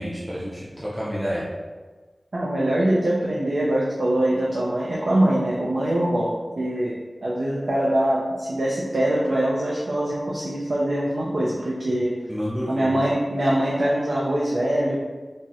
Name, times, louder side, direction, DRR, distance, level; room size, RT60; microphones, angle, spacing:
voice 1, 0.0-1.4 11.8-11.9 12.3-12.9, equal, 10° right, -8 dB, 0.5 m, -29 dB
voice 2, 2.3-7.0 7.2-12.1 12.7-15.0, right 1 dB, 85° right, -5 dB, 0.4 m, -23 dB
3.9 x 2.0 x 2.4 m, 1.3 s
wide cardioid pair, 65°, 0 cm